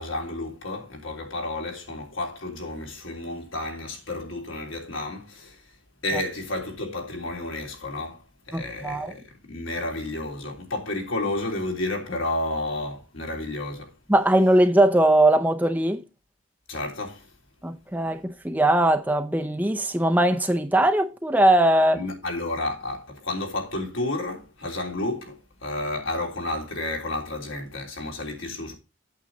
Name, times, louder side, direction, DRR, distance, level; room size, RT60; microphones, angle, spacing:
voice 1, 0.0-5.6 6.0-13.9 16.7-17.3 21.9-28.7, left 2 dB, 75° left, 3.3 m, -31 dB
voice 2, 8.5-9.1 14.1-16.0 17.6-22.0, right 1 dB, 10° right, 0.5 m, -20 dB
8.6 x 7.9 x 4.1 m
head